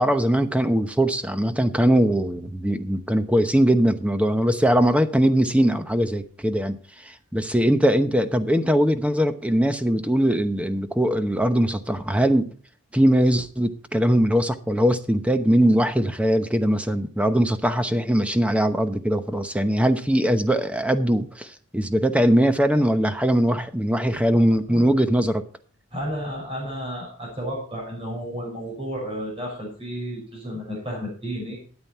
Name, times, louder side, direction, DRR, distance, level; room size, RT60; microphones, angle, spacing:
voice 1, 0.0-6.8 7.3-12.5 12.9-25.4, equal, 5° right, 0.8 m, -21 dB
voice 2, 24.3-24.9 25.9-31.6, equal, 25° right, 5.8 m, -32 dB
12.5 x 9.0 x 4.4 m
head